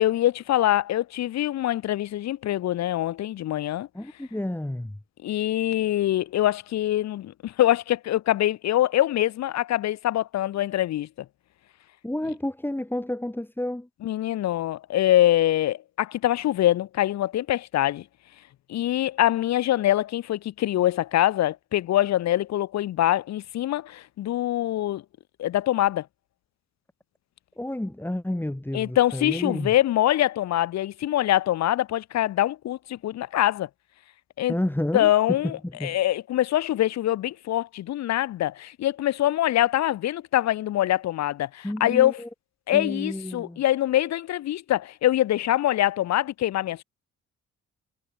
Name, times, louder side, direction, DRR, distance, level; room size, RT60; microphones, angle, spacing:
voice 1, 0.0-3.9 5.2-11.1 14.0-18.0 18.7-25.0 25.4-26.1 28.7-33.7 34.4-34.5 34.9-42.2 42.7-46.8, left 13 dB, 60° left, 0.8 m, -24 dB
voice 2, 3.9-5.0 12.0-13.9 27.6-29.7 34.5-35.1 35.4-36.0 41.6-42.3 42.7-43.6, left 1 dB, 5° left, 4.5 m, -30 dB
cardioid pair, 90°, 30 cm